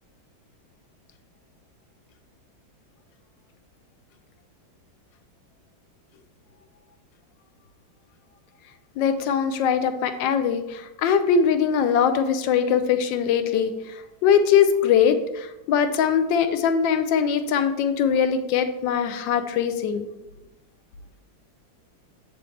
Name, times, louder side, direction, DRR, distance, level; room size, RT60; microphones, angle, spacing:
voice 1, 9.0-20.1, left 7 dB, 80° left, 9 dB, 1.3 m, -22 dB
7.8 x 6.8 x 3.2 m, 0.90 s
omnidirectional pair, 2.1 m